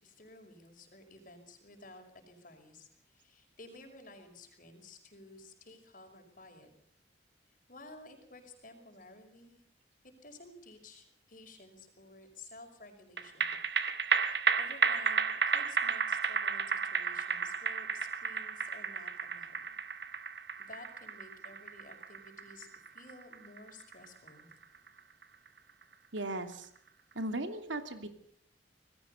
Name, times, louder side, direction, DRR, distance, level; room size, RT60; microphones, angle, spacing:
voice 1, 0.0-6.7 7.7-9.6 10.2-13.6 13.9-19.6 20.7-24.5, left 2 dB, 45° left, 6 dB, 5.4 m, -54 dB
sound 1, 13.2-25.8 26.2-26.3, right 6 dB, 65° right, 1.9 m, -33 dB
voice 2, 26.1-26.7 27.1-28.1, right 2 dB, 90° right, 8 dB, 2.9 m, -37 dB
27.5 x 20.0 x 5.6 m, 0.65 s
head